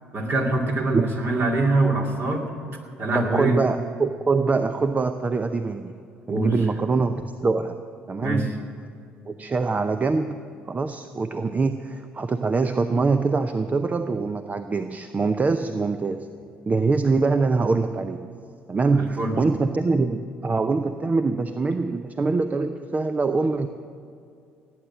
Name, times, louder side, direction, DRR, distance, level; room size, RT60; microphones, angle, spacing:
voice 1, 0.1-2.5 3.0-3.6 6.3-6.5 8.2-8.4 18.9-19.4, right 2 dB, 45° right, 1 dB, 2.5 m, -24 dB
voice 2, 3.1-5.9 6.3-7.8 8.1-8.6 9.3-10.4 10.7-16.3 16.7-18.3 18.7-23.7, right 4 dB, 30° right, 9 dB, 0.7 m, -24 dB
17.5 x 9.0 x 7.3 m, 2.4 s
hypercardioid pair, 55°, 5 cm